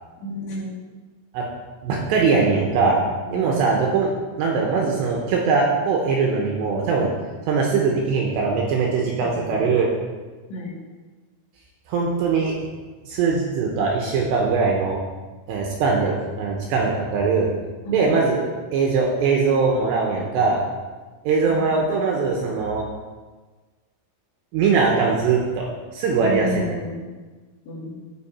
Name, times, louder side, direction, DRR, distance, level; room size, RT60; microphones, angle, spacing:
voice 1, 0.2-0.7 3.3-3.6 9.1-9.8 10.5-10.7 17.8-18.1 21.5-21.8 26.2-27.1 27.7-27.9, left 1 dB, 60° left, -6 dB, 4.1 m, -32 dB
voice 2, 1.8-3.0 3.3-4.1 4.4-7.1 7.5-9.9 11.9-12.6 13.1-15.0 15.5-17.5 17.9-20.6 21.2-22.9 24.5-25.7 25.9-26.7, right 4 dB, 75° right, -1 dB, 2.8 m, -21 dB
14.0 x 5.5 x 4.2 m, 1.3 s
omnidirectional pair, 5.8 m